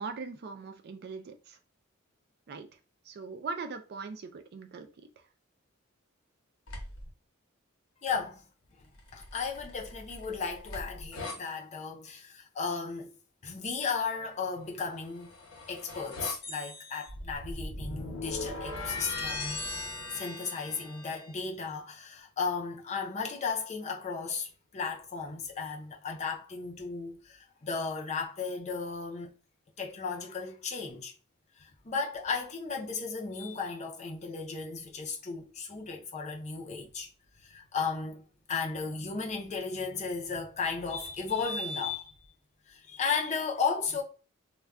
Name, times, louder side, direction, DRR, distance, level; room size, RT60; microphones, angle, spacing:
voice 1, 0.0-1.6 2.5-2.7 3.1-4.9, right 4 dB, 50° right, 0.4 m, -40 dB
sound 1, 6.7-7.1 9.0-11.4 14.9-21.3, left 2 dB, 75° left, 0.9 m, -39 dB
voice 2, 8.0-8.4 9.1-13.1 13.4-15.3 15.7-19.6 20.1-29.3 29.8-31.1 31.6-37.1 37.4-38.2 38.5-42.2 42.7-44.0, left 5 dB, 35° left, 0.5 m, -35 dB
2.3 x 2.1 x 3.5 m
head